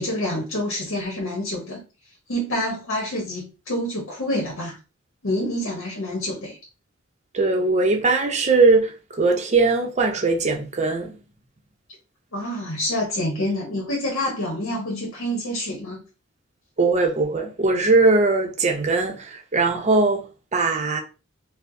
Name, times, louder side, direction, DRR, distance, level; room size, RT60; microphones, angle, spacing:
voice 1, 0.0-1.8 2.3-4.8 5.2-6.6 12.3-16.0, left 1 dB, 65° left, 0.9 m, -27 dB
voice 2, 7.3-11.1 16.8-21.0, right 3 dB, 35° right, 0.6 m, -20 dB
4.4 x 2.1 x 2.6 m
head